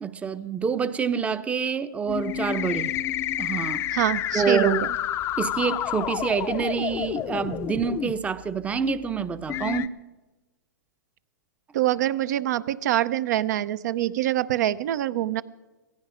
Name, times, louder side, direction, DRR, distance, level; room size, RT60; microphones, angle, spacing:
voice 1, 0.0-2.9 3.4-3.8 4.3-4.8 5.4-9.9, right 6 dB, 10° right, 0.7 m, -27 dB
sound 1, 2.1-8.1 8.9-9.0 9.5-9.9, left 12 dB, 25° left, 0.6 m, -29 dB
voice 2, 3.9-4.8 11.7-15.4, right 13 dB, 60° right, 0.7 m, -25 dB
17.5 x 16.0 x 5.1 m
hypercardioid pair, 135°, 10 cm